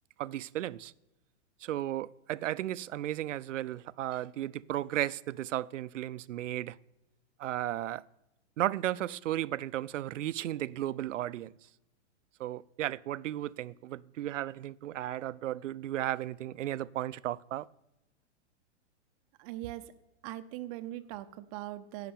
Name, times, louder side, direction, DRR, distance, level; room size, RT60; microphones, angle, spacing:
voice 1, 0.2-0.9 1.6-6.8 7.4-8.0 8.6-11.5 12.4-17.7, right 13 dB, 90° right, 0.5 m, -34 dB
voice 2, 19.4-19.9 20.2-22.1, right 15 dB, 30° right, 0.5 m, -40 dB
11.0 x 5.8 x 8.7 m
hypercardioid pair, 140°, 36 cm